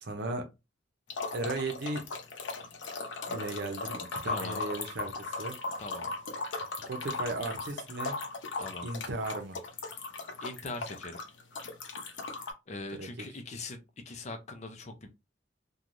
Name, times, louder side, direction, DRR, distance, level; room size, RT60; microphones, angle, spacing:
voice 1, 0.0-0.5 1.3-2.1 3.3-5.6 6.7-8.2 8.8-9.6 12.9-13.1, right 2 dB, 65° right, 0.7 m, -36 dB
sound 1, 1.1-12.5, left 3 dB, 75° left, 0.7 m, -38 dB
voice 2, 4.2-4.6 5.8-6.1 8.6-8.9 10.4-11.2 12.7-15.1, left 2 dB, 40° left, 0.6 m, -41 dB
3.1 x 2.3 x 2.6 m
head